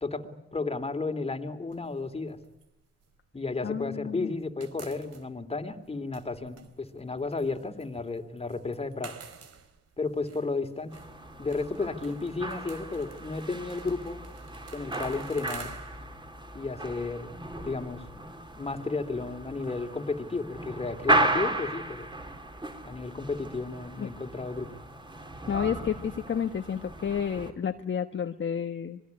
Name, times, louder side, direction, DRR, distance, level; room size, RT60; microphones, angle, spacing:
voice 1, 0.0-2.4 3.3-9.1 10.0-11.0 11.4-14.2 14.7-15.7 16.5-17.4 17.6-18.2 18.6-22.1 22.8-24.7, left 3 dB, 20° left, 8 dB, 3.1 m, -33 dB
sound 1, 1.7-4.0 4.2-19.7, right 6 dB, 55° right, 3.9 m, -52 dB
voice 2, 3.6-4.3 24.0-24.1 25.5-29.0, left 7 dB, 40° left, 6 dB, 1.4 m, -31 dB
sound 2, 10.9-27.5, right 1 dB, 15° right, 4.3 m, -35 dB
26.5 x 21.0 x 9.7 m, 0.89 s
cardioid pair, 90°, 30 cm